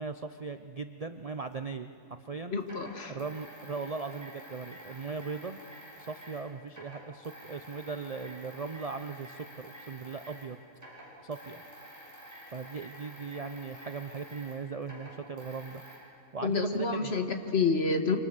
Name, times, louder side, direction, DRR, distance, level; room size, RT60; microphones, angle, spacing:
voice 1, 0.0-2.6 3.1-5.6 6.0-10.6 11.2-11.6 11.9-12.1 12.5-15.8 16.3-17.1, right 4 dB, 65° right, 8 dB, 0.3 m, -38 dB
sound 1, 1.5-1.6 2.6-6.4 6.7-10.5 10.7-16.0, equal, 10° right, 7.3 m, -49 dB
voice 2, 2.5-3.2 16.4-18.2, left 4 dB, 40° left, 6 dB, 1.6 m, -28 dB
26.5 x 25.5 x 6.7 m, 2.4 s
omnidirectional pair, 1.7 m